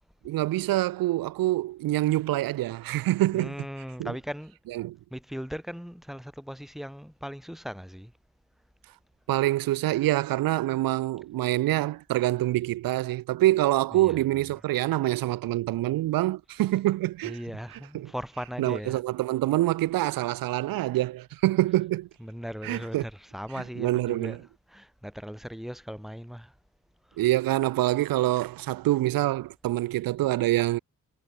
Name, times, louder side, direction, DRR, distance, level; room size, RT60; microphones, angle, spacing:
voice 1, 0.2-3.5 4.0-4.1 4.7-5.0 9.3-17.4 17.7-18.1 18.6-22.1 22.6-23.0 23.8-24.4 27.2-30.8, right 16 dB, 85° right, 0.6 m, -26 dB
voice 2, 3.3-4.6 5.1-8.1 13.9-14.2 17.2-19.0 22.2-26.5 27.1-27.2, equal, ahead, 6.1 m, -38 dB
cardioid pair, 90°, 34 cm